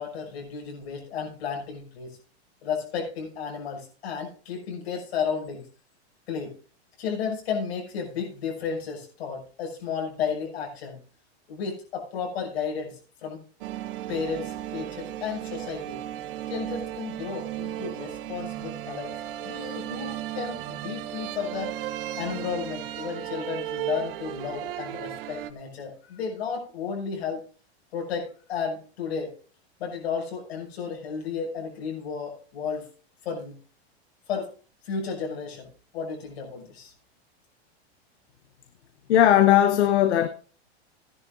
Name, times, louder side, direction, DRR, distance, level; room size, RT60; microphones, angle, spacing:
voice 1, 0.0-2.2 2.6-5.7 6.3-6.5 7.0-11.0 11.5-13.4 14.1-16.0 16.5-19.2 19.4-21.7 22.2-27.4 27.9-29.3 29.8-32.9 33.2-33.6 34.3-34.5 34.8-35.7 35.9-36.9, left 6 dB, 65° left, 6.3 m, -33 dB
sound 1, 13.6-25.5, right 12 dB, 55° right, 1.0 m, -35 dB
voice 2, 39.1-40.3, left 11 dB, 85° left, 1.0 m, -18 dB
17.5 x 10.5 x 2.6 m
supercardioid pair, 155°, 33 cm